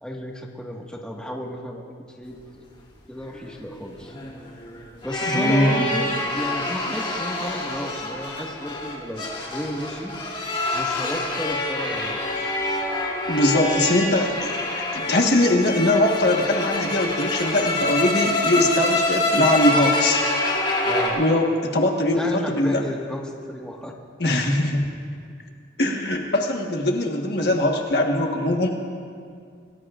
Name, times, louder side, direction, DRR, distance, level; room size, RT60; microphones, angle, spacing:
voice 1, 0.0-2.6 3.1-4.1 5.0-6.1 6.3-10.1 10.7-12.5 20.9-21.2 22.1-23.9, equal, 5° left, -2 dB, 1.6 m, -33 dB
sound 1, 3.3-21.1, left 2 dB, 30° left, 3.0 m, -26 dB
voice 2, 5.3-5.9 13.3-20.2 21.1-22.8 24.2-24.9 25.8-28.7, left 1 dB, 60° left, 1 dB, 1.4 m, -21 dB
28.0 x 18.5 x 2.5 m, 2.2 s
head